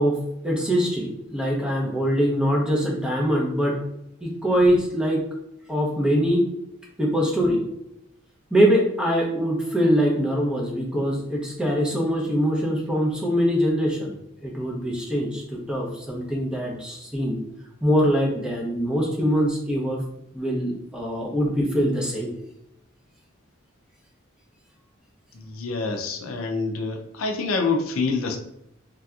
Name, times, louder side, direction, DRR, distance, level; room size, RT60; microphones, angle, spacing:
voice 1, 0.0-3.8 4.2-5.2 5.7-6.4 7.0-7.6 8.5-17.4 17.8-20.0 20.3-22.3, equal, 5° right, -2 dB, 0.6 m, -23 dB
voice 2, 25.3-28.4, left 4 dB, 85° left, 4 dB, 0.5 m, -26 dB
3.3 x 2.7 x 2.3 m, 0.82 s
head